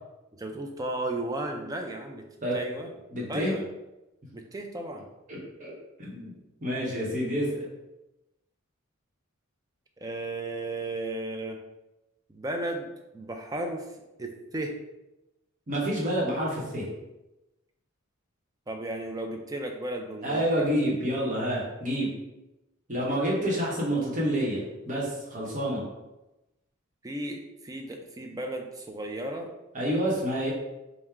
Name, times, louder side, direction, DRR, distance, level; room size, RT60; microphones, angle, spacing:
voice 1, 0.3-2.2 2.5-2.9 3.3-3.6 4.3-5.0 10.0-11.6 12.3-12.9 13.1-13.9 14.2-14.7 18.7-20.4 27.0-29.5, right 1 dB, 15° right, 3 dB, 0.4 m, -34 dB
voice 2, 3.1-3.5 5.3-5.7 6.0-6.3 6.6-7.5 15.7-16.9 20.2-22.1 22.9-25.8 29.7-30.5, equal, 35° right, -4 dB, 0.9 m, -28 dB
3.6 x 2.1 x 4.3 m, 0.98 s
head